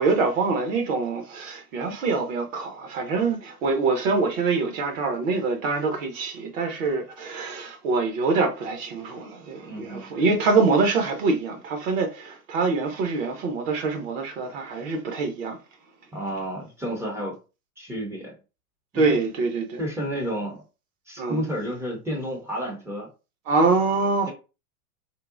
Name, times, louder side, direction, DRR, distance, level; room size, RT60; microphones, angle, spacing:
voice 1, 0.0-15.6 18.9-19.8 21.2-21.4 23.5-24.3, right 4 dB, 55° right, 0.8 m, -25 dB
voice 2, 9.6-10.2 16.1-17.4 17.8-18.4 18.9-19.2 19.8-20.6 21.1-23.1, equal, 5° right, 0.4 m, -31 dB
3.7 x 2.1 x 2.4 m
hypercardioid pair, 105°, 48 cm